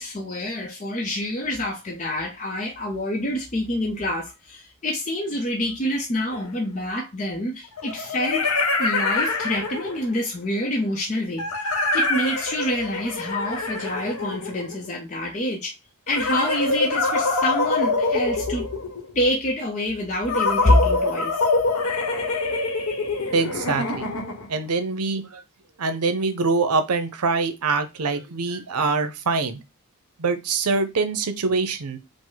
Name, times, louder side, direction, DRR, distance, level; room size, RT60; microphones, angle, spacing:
voice 1, 0.0-8.5 8.8-15.7 16.1-18.7 19.1-21.4, left 1 dB, 30° left, 0.6 m, -26 dB
sound 1, 6.3-6.4 7.8-10.1 11.4-14.9 16.1-19.1 20.3-24.6, left 3 dB, 75° left, 1.0 m, -25 dB
voice 2, 23.3-24.1 24.5-25.4 25.8-29.6 30.2-32.0, right 4 dB, 90° right, 0.7 m, -24 dB
5.1 x 2.1 x 3.9 m
head